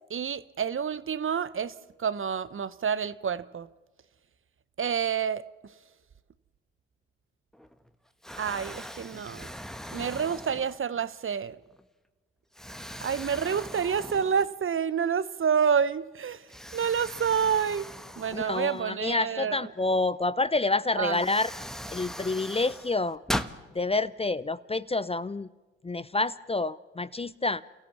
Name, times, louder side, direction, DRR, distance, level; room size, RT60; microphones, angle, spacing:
voice 1, 0.1-3.7 4.8-5.4 8.4-9.5 9.9-11.6 13.0-19.6 20.9-21.2, right 7 dB, 40° right, 0.9 m, -28 dB
Explosion, 7.5-7.9 8.2-11.1 11.7-11.8 12.5-14.8 15.1-15.2 16.5-19.1 20.5-20.6 21.1-23.6, equal, ahead, 1.2 m, -39 dB
voice 2, 18.3-21.5 21.9-23.2 23.7-25.5 25.8-27.6, left 3 dB, 20° left, 0.6 m, -28 dB
28.5 x 14.5 x 7.2 m
hypercardioid pair, 45°, 31 cm